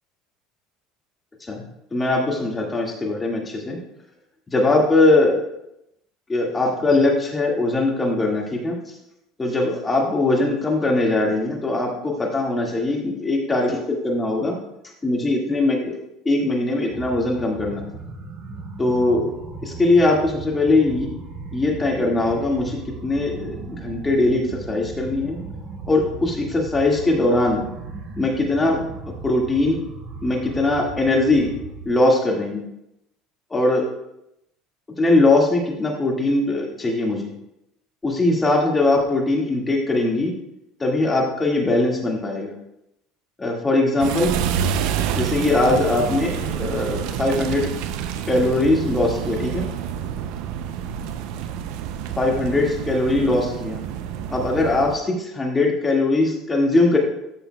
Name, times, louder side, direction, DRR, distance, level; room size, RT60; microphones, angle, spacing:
voice 1, 1.9-3.8 4.5-5.4 6.3-8.8 9.4-14.6 15.0-16.0 16.3-17.9 18.8-19.3 19.6-21.1 21.5-25.4 25.9-27.6 28.2-28.8 29.2-29.8 30.2-31.5 31.9-32.7 33.5-33.9 35.0-37.3 38.0-40.4 40.8-42.6 43.4-44.4 45.1-47.7 48.3-49.7 52.2-53.8 54.3-57.0, left 2 dB, 15° left, -1 dB, 1.9 m, -21 dB
sound 1, 16.9-31.9, right 4 dB, 50° right, 1.3 m, -37 dB
sound 2, 44.0-55.0, right 8 dB, 75° right, 0.5 m, -28 dB
13.0 x 6.9 x 2.3 m, 0.84 s
supercardioid pair, 115°, 0 cm